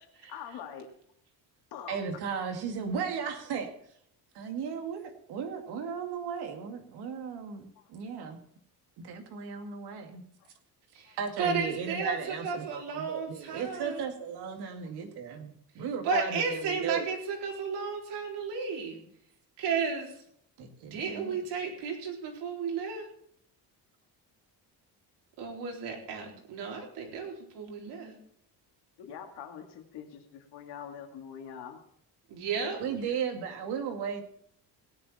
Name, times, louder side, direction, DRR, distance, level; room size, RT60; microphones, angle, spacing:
voice 1, 0.3-0.9 1.7-2.0 7.8-7.9 10.4-10.5 11.1-11.2 29.0-31.8 33.0-33.2, left 8 dB, 75° left, 4 dB, 2.3 m, -44 dB
voice 2, 1.9-3.7 4.3-5.0 5.3-8.4 9.0-10.2 11.2-17.0 20.6-21.4 32.8-34.2, right 6 dB, 70° right, 4 dB, 2.4 m, -35 dB
voice 3, 10.9-14.0 16.0-19.0 19.6-20.2 20.9-23.1 25.4-28.2 32.3-32.8, right 5 dB, 90° right, 1 dB, 4.1 m, -33 dB
17.5 x 10.0 x 4.3 m, 0.67 s
cardioid pair, 175°, 40 cm